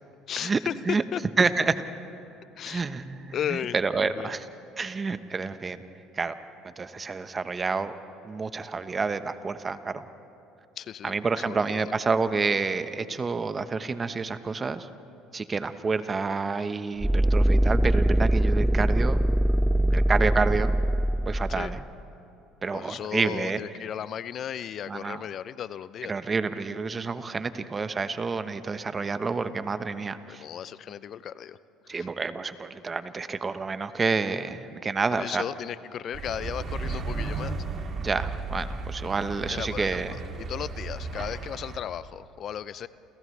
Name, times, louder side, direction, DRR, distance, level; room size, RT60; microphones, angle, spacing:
voice 1, 0.3-0.7 1.1-1.2 2.6-2.9 3.3-4.3 10.8-11.2 11.5-11.9 21.6-21.7 22.7-26.1 30.3-31.6 31.8-32.1 34.3-34.4 35.2-37.6 39.5-42.9, left 9 dB, 55° left, 16 dB, 0.5 m, -35 dB
voice 2, 1.4-1.7 2.7-4.5 4.8-5.8 6.1-6.3 6.6-7.9 8.2-10.1 11.0-14.9 15.3-19.2 19.9-20.7 21.3-21.8 22.6-23.6 24.9-25.2 26.1-30.4 31.9-35.4 38.0-40.2, right 4 dB, 30° right, 11 dB, 1.1 m, -29 dB
sound 1, 17.0-21.9, right 1 dB, 5° right, 0.4 m, -22 dB
sound 2, 36.1-41.8, right 3 dB, 45° right, 2.6 m, -34 dB
29.0 x 29.0 x 3.4 m, 2.9 s
supercardioid pair, 75°, 0 cm